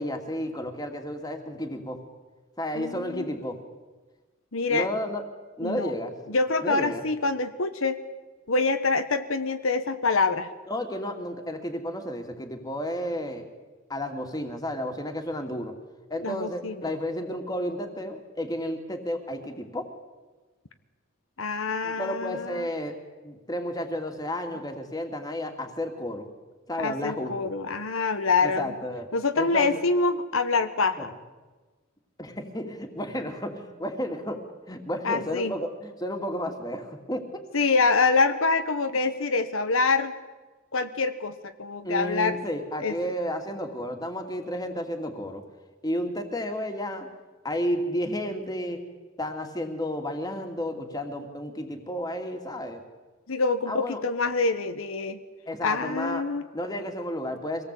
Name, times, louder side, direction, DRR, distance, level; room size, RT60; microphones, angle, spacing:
voice 1, 0.0-2.0 2.6-3.6 4.7-5.2 5.6-6.1 6.6-7.0 10.7-13.4 13.9-15.7 16.1-19.9 21.8-22.9 23.2-26.3 26.7-27.4 28.4-29.1 29.4-29.7 31.0-31.1 32.2-34.4 34.7-37.3 41.8-45.4 45.8-47.1 47.4-48.8 49.2-52.8 53.7-54.0 55.5-56.2 56.5-57.6, equal, 20° left, 4 dB, 2.6 m, -32 dB
voice 2, 2.7-3.3 4.5-4.9 5.6-5.9 6.3-8.0 8.5-10.5 16.2-16.9 21.4-22.7 26.8-28.7 29.1-31.1 35.0-35.5 37.5-40.1 40.7-41.3 41.6-42.4 42.8-43.0 53.3-55.2 55.6-56.4, left 4 dB, 85° left, 9 dB, 1.3 m, -25 dB
25.0 x 18.0 x 8.5 m, 1.3 s
head